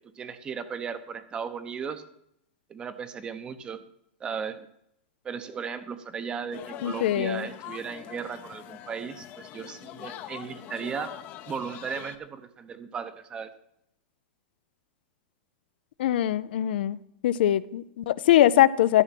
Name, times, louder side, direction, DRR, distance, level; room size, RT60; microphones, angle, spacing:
voice 1, 0.2-2.0 2.7-3.8 4.2-4.7 5.2-11.1 11.5-13.5, right 6 dB, 15° right, 11 dB, 0.7 m, -36 dB
sound 1, 6.5-12.2, left 11 dB, 30° left, 0.7 m, -43 dB
voice 2, 6.8-7.5 16.0-17.0 17.2-19.0, left 13 dB, 70° left, 16 dB, 0.4 m, -22 dB
13.5 x 6.2 x 5.9 m, 0.76 s
supercardioid pair, 160°, 6 cm